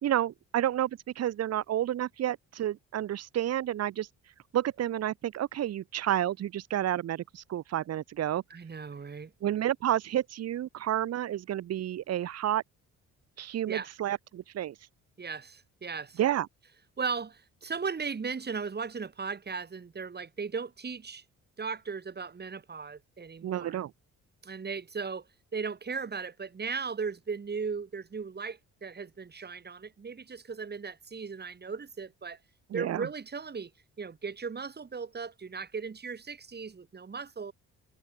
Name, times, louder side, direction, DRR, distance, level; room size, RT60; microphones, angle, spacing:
voice 1, 0.0-4.1 4.5-8.4 9.4-12.6 13.4-14.7 16.2-16.5 23.4-23.9 32.7-33.1, right 12 dB, 55° right, 0.9 m, -30 dB
voice 2, 8.5-9.3 13.7-13.9 15.2-16.2 17.0-21.2 21.6-23.8 24.4-25.2 25.5-32.4 32.7-33.7 34.0-37.5, right 5 dB, 35° right, 3.0 m, -37 dB
cardioid pair, 90°, 30 cm